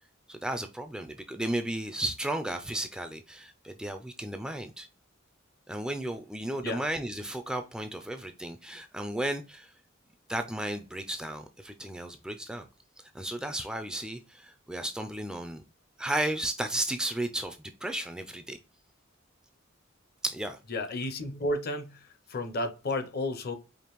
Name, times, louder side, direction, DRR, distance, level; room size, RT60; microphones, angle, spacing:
voice 1, 0.3-4.9 5.7-9.7 10.3-12.7 13.1-15.6 16.0-18.6 20.2-20.6, right 1 dB, 5° right, 0.3 m, -34 dB
voice 2, 20.7-22.0 22.3-23.5, left 2 dB, 50° left, 0.6 m, -32 dB
5.0 x 2.5 x 3.0 m
head